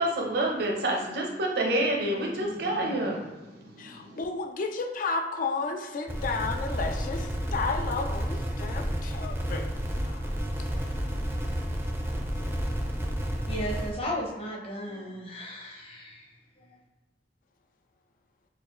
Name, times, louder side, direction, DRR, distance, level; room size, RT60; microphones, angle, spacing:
voice 1, 0.0-3.2 3.5-4.2, right 1 dB, 65° right, -1 dB, 0.7 m, -28 dB
voice 2, 3.8-9.7 10.0-10.3, left 4 dB, 50° left, 4 dB, 0.4 m, -32 dB
sound 1, 6.1-13.9, equal, 15° right, 0.5 m, -31 dB
voice 3, 13.5-16.3 16.6-16.8, equal, 35° left, -2 dB, 0.8 m, -35 dB
4.1 x 2.4 x 3.0 m, 1.1 s
head